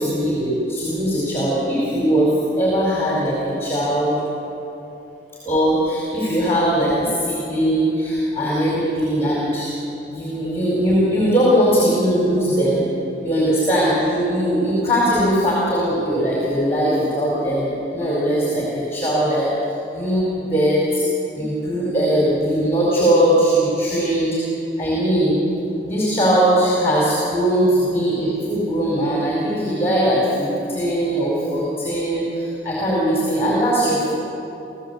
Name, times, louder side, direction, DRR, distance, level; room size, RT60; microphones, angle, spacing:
voice 1, 0.0-2.3 2.6-4.1 5.4-9.7 10.1-12.8 13.2-18.6 18.9-19.5 19.9-21.0 21.4-24.4 24.8-25.4 25.8-34.0, equal, 15° left, -5 dB, 4.6 m, -20 dB
27.0 x 16.0 x 8.2 m, 2.9 s
head